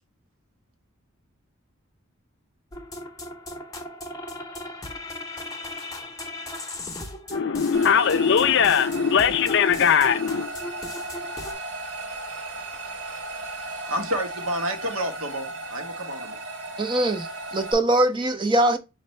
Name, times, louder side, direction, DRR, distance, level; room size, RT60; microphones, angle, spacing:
sound 1, 2.7-11.5, left 1 dB, 15° left, 0.7 m, -37 dB
voice 1, 7.3-10.5, left 7 dB, 60° left, 0.4 m, -20 dB
sound 2, 7.7-17.7, right 2 dB, 60° right, 1.2 m, -36 dB
voice 2, 13.7-16.4, equal, 85° right, 1.0 m, -30 dB
voice 3, 16.8-18.8, right 1 dB, 25° right, 0.4 m, -22 dB
5.1 x 2.5 x 3.1 m
head